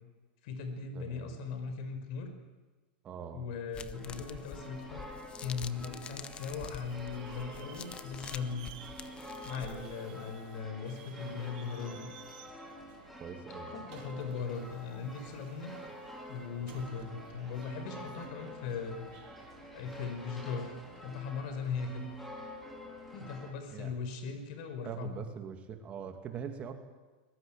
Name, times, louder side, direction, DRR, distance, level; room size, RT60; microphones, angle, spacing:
voice 1, 0.4-2.3 3.3-5.0 5.4-8.7 9.4-12.1 13.7-15.7 16.3-19.1 19.7-22.1 23.1-25.2, left 5 dB, 55° left, 7 dB, 5.4 m, -39 dB
voice 2, 0.9-1.4 3.0-3.5 13.2-13.7 23.7-23.9 24.8-26.8, right 7 dB, 25° right, 6 dB, 2.5 m, -42 dB
sound 1, 3.7-10.0, left 7 dB, 20° left, 1.0 m, -47 dB
sound 2, 3.9-23.5, left 1 dB, 5° left, 4.5 m, -48 dB
Subway metro underground, 5.7-24.2, right 11 dB, 55° right, 3.1 m, -57 dB
23.0 x 22.0 x 9.1 m, 1.3 s
supercardioid pair, 155°, 5 cm